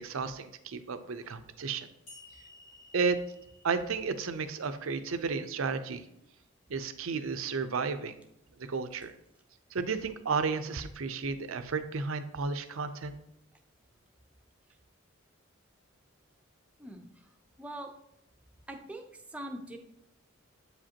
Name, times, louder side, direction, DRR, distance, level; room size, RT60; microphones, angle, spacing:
voice 1, 0.0-1.9 2.9-3.2 3.6-6.1 6.7-8.2 8.7-9.1 9.7-13.2, right 4 dB, 75° right, 10 dB, 0.5 m, -33 dB
sound 1, 2.1-5.4, left 3 dB, 80° left, 2.5 m, -56 dB
voice 2, 16.8-17.3 17.6-17.9 18.7-19.8, right 1 dB, 5° right, 3 dB, 0.6 m, -42 dB
7.9 x 5.0 x 2.8 m, 0.79 s
head